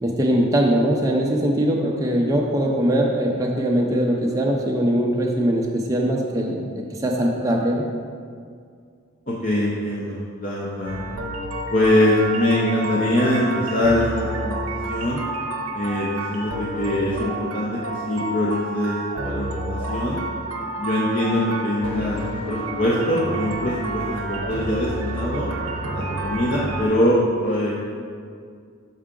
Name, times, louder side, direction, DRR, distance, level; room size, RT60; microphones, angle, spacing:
voice 1, 0.0-7.8, right 1 dB, 15° right, -1 dB, 0.4 m, -21 dB
voice 2, 9.3-11.0 11.7-15.2 15.7-19.0 19.2-20.2 20.8-25.5 25.9-28.0, left 1 dB, 35° left, -6 dB, 0.6 m, -23 dB
sound 1, 10.9-26.9, right 2 dB, 75° right, 0.6 m, -30 dB
5.6 x 4.8 x 3.7 m, 2.2 s
head